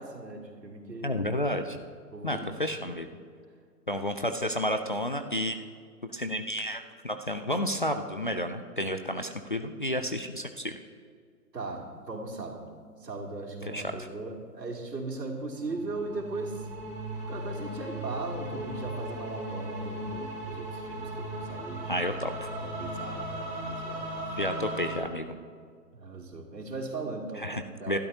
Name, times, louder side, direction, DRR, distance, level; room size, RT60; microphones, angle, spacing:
voice 1, 0.0-1.1 2.1-2.8 11.5-12.6 13.0-16.7 17.3-21.9 22.6-24.3 25.9-28.0, right 3 dB, 80° right, 0 dB, 3.0 m, -38 dB
voice 2, 1.0-1.8 2.2-3.1 3.9-5.6 6.1-10.8 13.6-13.9 21.9-22.5 24.4-25.3 27.4-27.6 27.9-28.0, equal, 35° left, 6 dB, 0.4 m, -31 dB
sound 1, 15.6-25.0, right 1 dB, 35° right, 3.3 m, -37 dB
20.5 x 12.5 x 2.8 m, 2.1 s
figure-of-eight pair, 140°, 48 cm